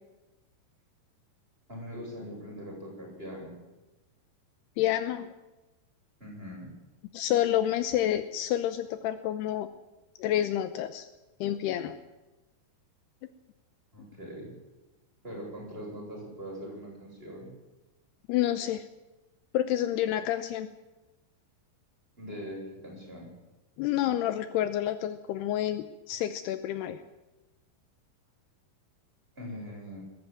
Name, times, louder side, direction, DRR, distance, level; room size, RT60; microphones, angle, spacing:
voice 1, 1.7-3.5 6.2-6.7 13.9-14.5 15.2-17.5 22.2-23.3 29.4-30.0, equal, 10° right, -2 dB, 8.1 m, -41 dB
voice 2, 4.8-5.3 7.1-9.7 10.2-11.1 11.4-12.0 18.3-18.8 19.5-20.7 23.8-27.0, left 12 dB, 80° left, 11 dB, 2.8 m, -29 dB
21.0 x 15.0 x 9.1 m, 1.1 s
omnidirectional pair, 4.9 m